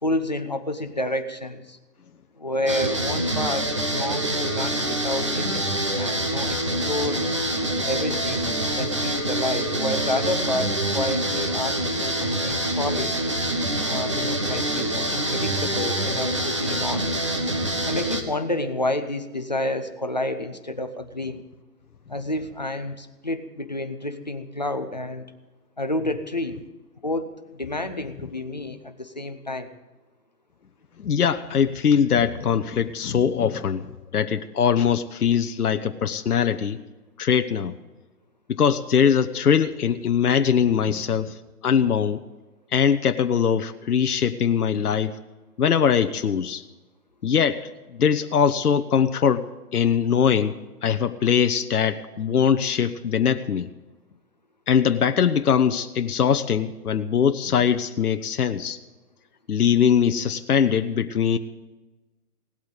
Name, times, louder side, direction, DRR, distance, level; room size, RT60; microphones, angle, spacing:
voice 1, 0.0-1.8 2.4-7.3 7.8-13.2 13.8-17.1 17.9-21.4 22.1-25.3 25.8-26.6 27.0-29.7, left 1 dB, 30° left, 8 dB, 0.6 m, -29 dB
sound 1, 2.7-18.2, right 1 dB, 20° right, 0.7 m, -26 dB
voice 2, 31.0-36.8 37.2-37.7 38.5-41.4 41.6-42.2 42.7-45.2 45.6-46.6 47.2-53.7 54.7-58.8 59.5-61.4, left 7 dB, 70° left, 8 dB, 0.8 m, -22 dB
17.5 x 8.5 x 7.9 m, 1.1 s
hypercardioid pair, 160°, 47 cm